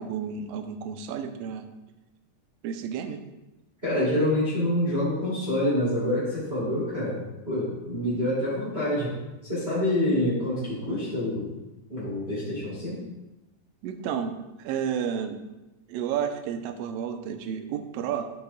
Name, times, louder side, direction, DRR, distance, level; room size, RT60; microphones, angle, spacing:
voice 1, 0.0-1.7 2.6-3.2 13.8-15.4 15.9-18.3, right 8 dB, 80° right, 7 dB, 1.5 m, -31 dB
voice 2, 3.8-9.1 9.4-11.5 11.9-13.0, left 1 dB, 20° right, -8 dB, 2.6 m, -27 dB
12.0 x 6.6 x 2.3 m, 1.0 s
omnidirectional pair, 3.4 m